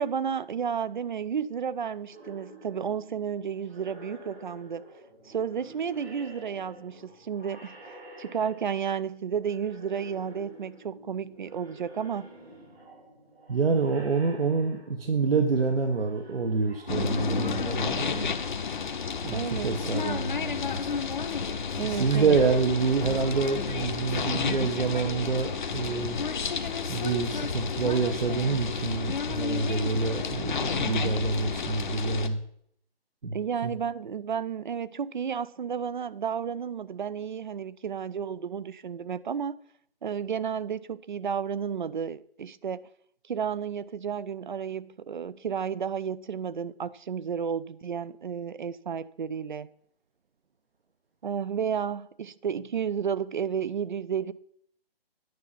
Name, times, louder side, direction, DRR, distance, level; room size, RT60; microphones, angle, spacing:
voice 1, 0.0-4.9 5.2-12.3 19.3-20.2 21.8-22.4 33.3-39.6 40.0-42.9 43.3-49.7 51.2-54.3, right 7 dB, 50° right, 0.4 m, -32 dB
sound 1, 2.0-9.1 9.3-17.7, right 1 dB, 85° right, 4.2 m, -49 dB
voice 2, 13.5-18.3 19.2-20.8 21.8-26.2 26.9-32.4 33.2-33.4 33.6-33.7, right 4 dB, 65° right, 1.0 m, -27 dB
sound 2, 16.9-32.3, left 5 dB, 50° left, 0.9 m, -31 dB
9.5 x 5.6 x 5.5 m
figure-of-eight pair, 145°, 31 cm